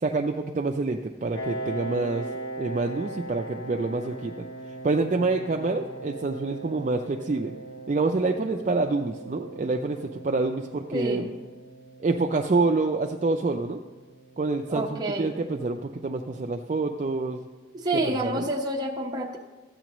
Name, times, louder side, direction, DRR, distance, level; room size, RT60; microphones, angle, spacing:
voice 1, 0.0-2.3 2.6-4.5 4.8-7.5 7.9-11.3 12.0-13.8 14.4-17.5 17.9-18.5, right 3 dB, 40° right, 3 dB, 0.4 m, -27 dB
Piano, 1.3-16.7, right 2 dB, 65° left, 1.2 m, -40 dB
voice 2, 10.9-11.3 14.7-15.3 17.7-19.4, right 1 dB, 20° right, -1 dB, 0.9 m, -28 dB
13.5 x 8.4 x 3.0 m, 1.2 s
head